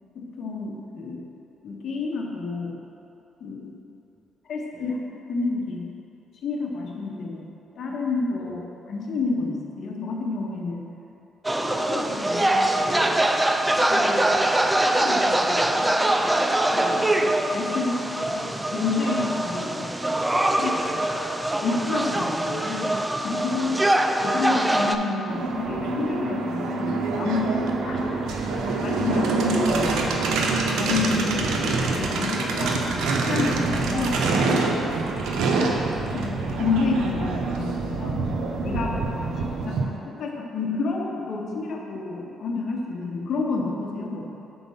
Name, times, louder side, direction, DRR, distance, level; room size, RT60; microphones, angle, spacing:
voice 1, 0.1-1.3 1.6-2.8 3.4-3.8 4.5-5.0 5.3-5.9 6.4-7.5 7.8-8.6 8.9-10.9 11.6-13.2 13.9-14.3 14.9-15.9 16.7-17.1 17.5-20.2 20.6-20.7 21.1-23.8 24.0-27.6 27.8-28.0 28.4-30.2 30.7-32.8 33.2-34.5 36.1-38.3 38.6-39.1 39.6-44.4, left 3 dB, 60° left, 0 dB, 0.8 m, -30 dB
sound 1, 11.4-25.0, right 1 dB, 10° right, 0.3 m, -23 dB
voice 2, 14.1-14.9 20.4-21.2 21.5-21.6 23.5-24.0 27.3-28.7 38.8-39.6, equal, 45° right, -4 dB, 1.5 m, -43 dB
sound 2, 25.3-39.9, right 3 dB, 85° right, 0.6 m, -25 dB
5.4 x 4.4 x 5.5 m, 2.8 s
cardioid pair, 90°, 0 cm